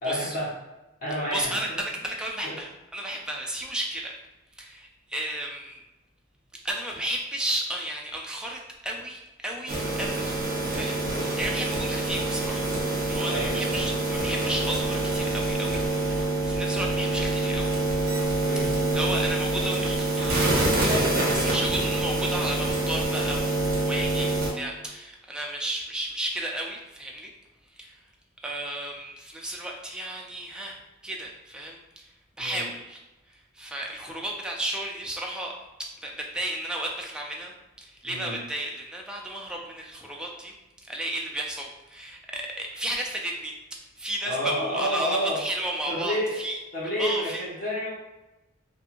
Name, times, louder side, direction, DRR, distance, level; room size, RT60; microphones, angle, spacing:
voice 1, 0.0-0.5 1.0-1.8 2.4-2.5 11.0-11.3 13.3-13.9 18.4-18.7 20.9-21.5 32.4-32.6 38.0-38.4 44.2-45.4 45.9-46.4 46.7-47.9, equal, 40° left, -6 dB, 1.0 m, -30 dB
voice 2, 1.3-4.1 4.5-5.8 6.6-10.3 10.7-12.7 13.1-17.8 18.9-20.4 21.3-27.3 27.7-28.0 28.4-32.1 32.4-33.0 33.3-35.5 36.0-37.5 37.8-40.5 40.8-43.5 44.0-46.6 47.0-47.4, right 1 dB, 5° right, -1 dB, 0.3 m, -33 dB
sound 1, 9.7-24.5, right 2 dB, 45° right, 0.7 m, -26 dB
2.8 x 2.6 x 2.5 m, 1.0 s
head